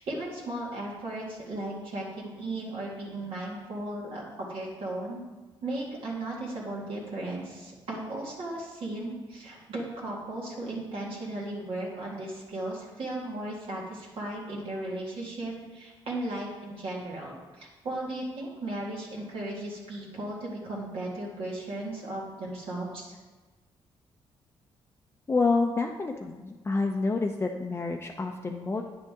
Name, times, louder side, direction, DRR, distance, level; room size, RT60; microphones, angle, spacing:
voice 1, 0.0-4.2 4.5-5.2 5.6-23.2, right 1 dB, 65° right, -5 dB, 2.0 m, -36 dB
voice 2, 25.3-28.8, left 3 dB, 25° left, 1 dB, 0.6 m, -28 dB
9.4 x 6.6 x 3.7 m, 1.2 s
cardioid pair, 95°, 10 cm